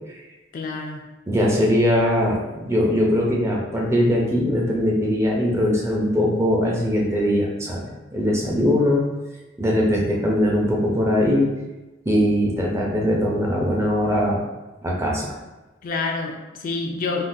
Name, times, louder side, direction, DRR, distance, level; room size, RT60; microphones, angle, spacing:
voice 1, 0.5-1.1 15.8-17.2, left 3 dB, 45° left, 1 dB, 0.3 m, -28 dB
voice 2, 1.3-9.0 9.6-11.5 12.1-14.4 14.8-15.4, equal, 15° right, -2 dB, 0.5 m, -21 dB
3.6 x 2.2 x 2.6 m, 1.1 s
head